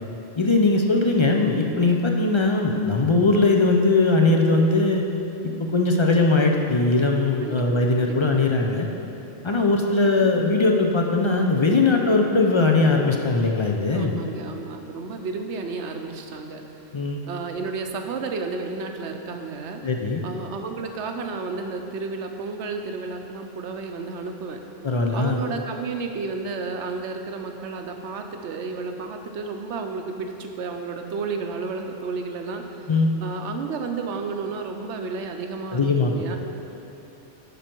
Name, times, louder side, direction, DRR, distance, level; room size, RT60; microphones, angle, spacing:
voice 1, 0.4-5.0 5.4-8.9 9.4-14.2 16.9-17.2 19.8-20.2 24.8-25.4 32.9-33.1 35.7-36.4, left 3 dB, 40° left, 1 dB, 0.4 m, -20 dB
voice 2, 8.0-8.4 13.9-16.6 17.3-19.8 20.2-24.6 25.1-32.9 33.2-36.4, right 4 dB, 75° right, 5 dB, 1.0 m, -32 dB
10.0 x 6.2 x 4.5 m, 2.9 s
omnidirectional pair, 1.2 m